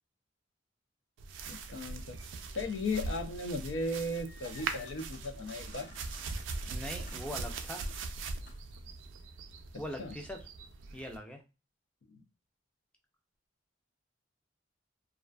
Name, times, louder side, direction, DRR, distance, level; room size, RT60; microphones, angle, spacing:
sound 1, 1.2-11.2, right 4 dB, 80° right, 0.4 m, -41 dB
voice 1, 1.5-2.2 2.5-5.9 10.0-10.2 12.1-12.2, left 2 dB, 80° left, 6 dB, 0.5 m, -36 dB
sound 2, 3.8-8.8, left 3 dB, 45° left, 0.7 m, -56 dB
voice 2, 6.6-7.9 9.8-10.5 10.9-11.4, left 1 dB, 5° left, 3 dB, 0.4 m, -41 dB
2.4 x 2.4 x 2.2 m, 0.28 s
head